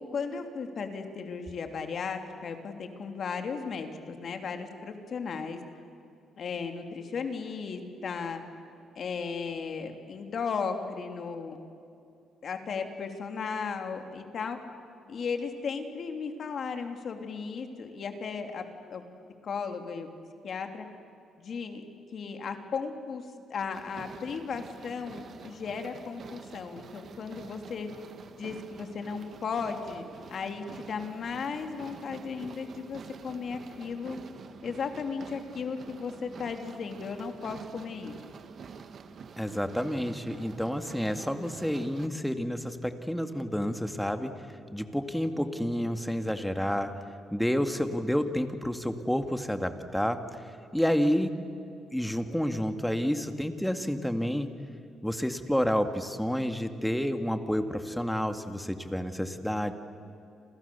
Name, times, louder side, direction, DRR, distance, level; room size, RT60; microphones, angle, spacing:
voice 1, 0.0-5.6 6.4-8.4 8.9-11.6 12.4-14.6 15.1-18.6 18.9-19.0 19.4-20.1 20.4-20.8 21.4-21.8 22.1-23.2 23.5-27.9 28.4-34.2 34.6-38.1, left 5 dB, 55° left, 5 dB, 2.9 m, -35 dB
sound 1, 23.7-42.1, right 6 dB, 55° right, 1.7 m, -47 dB
voice 2, 39.4-44.3 44.7-46.9 47.3-50.2 50.7-51.4 51.9-54.5 55.0-59.7, equal, 5° left, 7 dB, 2.1 m, -29 dB
30.0 x 27.5 x 7.0 m, 2.6 s
cardioid pair, 90°, 0 cm